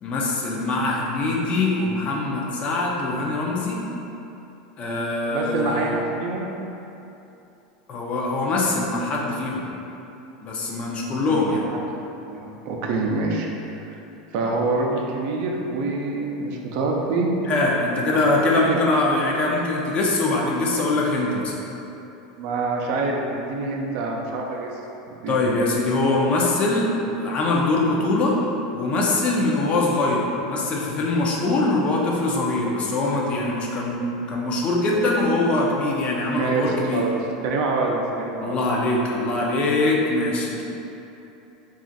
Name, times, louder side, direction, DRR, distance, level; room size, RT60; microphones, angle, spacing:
voice 1, 0.0-3.8 4.8-6.0 7.9-9.7 10.4-11.6 17.5-21.5 25.3-28.4 28.7-37.0 38.4-40.6, left 2 dB, 35° left, -2 dB, 0.5 m, -23 dB
voice 2, 5.3-6.5 10.9-11.8 12.3-14.0 14.3-17.3 18.1-18.2 18.5-18.8 22.4-24.7 25.2-25.5 36.4-38.6, right 3 dB, 60° right, 0 dB, 0.4 m, -26 dB
2.4 x 2.4 x 3.9 m, 2.9 s
supercardioid pair, 120°, 4 cm